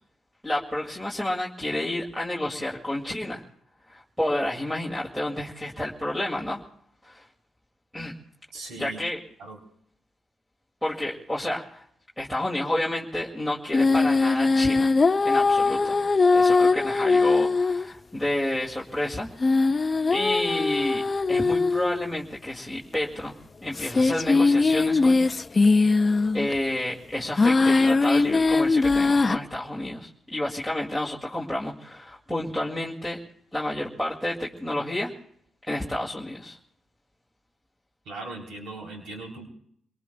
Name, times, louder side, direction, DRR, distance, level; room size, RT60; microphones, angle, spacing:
voice 1, 0.4-3.4 3.9-6.6 7.0-7.2 7.9-8.1 8.8-9.2 10.8-11.8 12.2-14.9 15.2-16.0 16.3-19.3 20.1-23.3 23.6-25.2 26.3-33.2 33.5-35.1 35.7-36.6, left 1 dB, ahead, -2 dB, 2.2 m, -30 dB
voice 2, 8.5-9.0 9.4-9.6 38.1-39.5, right 3 dB, 85° right, -1 dB, 3.6 m, -39 dB
sound 1, 13.7-17.9 19.4-22.1 22.9-23.0 23.8-26.5 27.4-29.4, left 3 dB, 30° left, 0.6 m, -21 dB
27.0 x 19.0 x 2.3 m, 0.67 s
cardioid pair, 75°, 0 cm